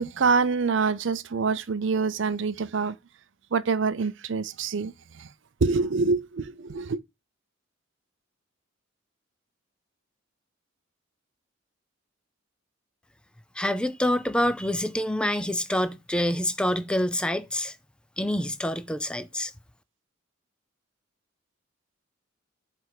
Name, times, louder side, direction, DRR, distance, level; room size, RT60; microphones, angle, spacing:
voice 1, 0.0-3.0 3.5-5.3 5.6-7.0, right 4 dB, 60° right, 0.5 m, -26 dB
voice 2, 13.6-17.7 18.2-19.5, left 1 dB, 5° left, 0.5 m, -26 dB
7.9 x 3.4 x 4.8 m
head